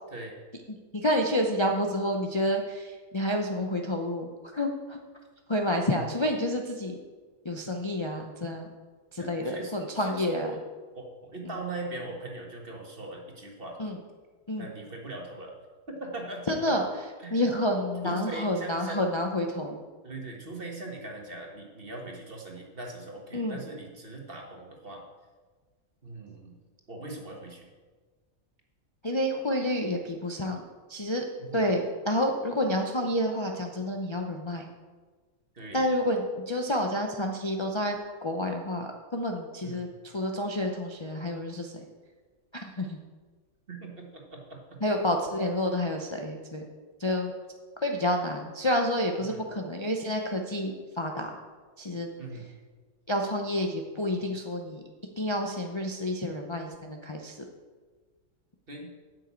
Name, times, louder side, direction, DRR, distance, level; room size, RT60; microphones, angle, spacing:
voice 1, 0.9-5.0 5.5-7.0 7.4-8.7 9.1-10.5 13.8-14.0 14.5-14.7 16.5-16.8 17.3-19.8 23.3-23.6 29.0-30.6 30.9-31.2 31.5-34.6 35.7-41.7 42.5-43.0 44.8-46.7 47.0-47.3 47.8-51.4 51.8-52.1 53.1-54.8 55.2-57.4, left 1 dB, 25° left, 1 dB, 0.7 m, -29 dB
voice 2, 9.2-10.6 10.9-13.8 14.6-15.6 15.9-16.8 17.2-17.4 18.0-19.0 20.0-25.1 26.0-26.6 26.9-27.7 31.4-31.6 35.5-35.9 39.6-39.8 43.7-44.8 49.3-49.4 52.2-52.5 58.7-58.9, right 2 dB, 40° right, 1 dB, 1.9 m, -40 dB
8.9 x 6.4 x 8.4 m, 1.4 s
omnidirectional pair, 1.5 m